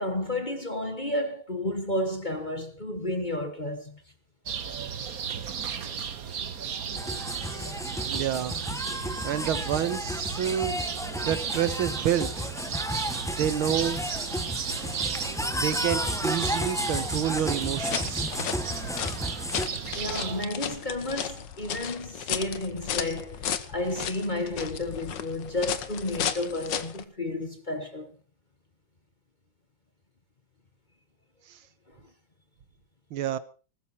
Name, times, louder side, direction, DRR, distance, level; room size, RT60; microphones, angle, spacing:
voice 1, 0.0-4.0 5.8-6.0 7.5-7.7 18.7-18.9 19.9-28.1, left 1 dB, 25° left, 1.3 m, -32 dB
sound 1, 4.5-20.5, right 7 dB, 50° right, 1.5 m, -35 dB
sound 2, 6.9-19.7, equal, 5° left, 0.3 m, -33 dB
voice 2, 8.1-8.6 9.2-10.8 11.2-12.5 13.3-14.0 15.6-18.3 31.5-31.6 33.1-33.4, right 10 dB, 85° right, 1.9 m, -28 dB
sound 3, 17.7-27.0, left 9 dB, 65° left, 1.7 m, -34 dB
20.0 x 13.5 x 4.3 m
omnidirectional pair, 2.2 m